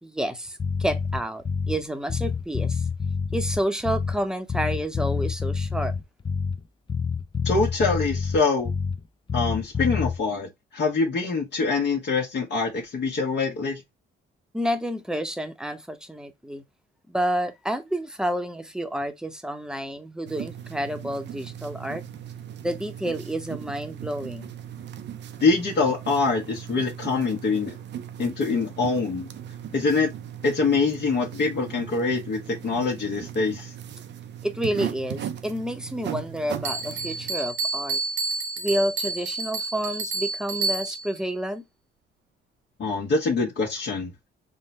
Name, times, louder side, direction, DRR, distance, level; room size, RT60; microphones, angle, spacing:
voice 1, 0.0-2.8 3.3-5.9 14.5-16.6 17.1-22.0 22.6-24.5 34.4-38.0 38.6-41.6, equal, 5° right, 0.8 m, -29 dB
Bass guitar, 0.6-1.8 2.1-4.2 4.5-6.6 6.9-9.0 9.3-10.2, left 6 dB, 25° left, 0.4 m, -27 dB
voice 2, 7.4-8.7 9.3-13.8 25.4-27.8 28.2-29.3 29.7-30.1 30.4-33.7 42.8-44.1, left 4 dB, 60° left, 1.2 m, -24 dB
sound 1, 20.2-37.3, right 9 dB, 60° right, 0.6 m, -38 dB
Bell, 36.6-41.2, right 3 dB, 80° right, 1.2 m, -29 dB
3.8 x 2.2 x 4.1 m
cardioid pair, 90°, 20 cm